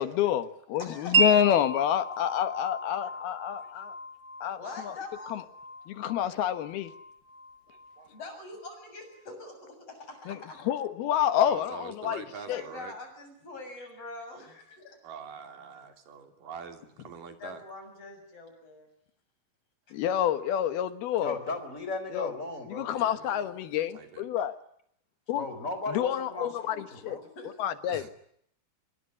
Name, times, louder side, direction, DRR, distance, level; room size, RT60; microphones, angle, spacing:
voice 1, 0.0-3.9 4.4-4.6 4.8-4.9 5.3-5.4 5.9-6.9 10.3-10.4 10.6-12.6 19.9-21.4 22.1-22.3 22.7-24.6 25.3-25.4 25.9-27.2 27.6-28.0, left 10 dB, 75° left, 11 dB, 3.3 m, -28 dB
voice 2, 0.8-1.1 4.6-5.4 8.1-10.7 12.5-15.0 17.4-18.9 27.4-27.5, left 3 dB, 35° left, 6 dB, 8.0 m, -44 dB
Wind chime, 1.1-8.8, right 3 dB, 40° right, 2.7 m, -33 dB
voice 3, 3.6-4.0 8.0-8.4 11.4-12.9 15.0-17.6 21.2-21.3 22.9-23.5 23.9-24.3 27.9-28.1, right 6 dB, 60° right, 6 dB, 4.3 m, -45 dB
voice 4, 21.2-22.9 25.3-27.3, left 3 dB, 20° left, 9 dB, 4.5 m, -36 dB
26.5 x 23.0 x 9.6 m, 0.70 s
omnidirectional pair, 4.5 m